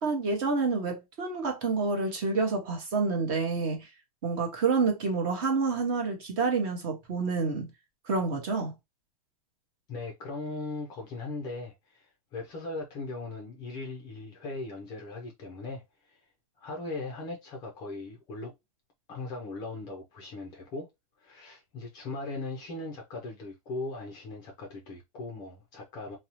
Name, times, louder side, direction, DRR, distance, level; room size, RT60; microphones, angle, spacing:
voice 1, 0.0-3.9 4.2-7.7 8.1-8.7, right 4 dB, 35° right, 0.9 m, -28 dB
voice 2, 9.9-16.2 16.6-18.5 19.1-20.9 21.2-26.2, left 3 dB, 20° left, 0.4 m, -39 dB
2.6 x 2.0 x 2.8 m
supercardioid pair, 165°, 20 cm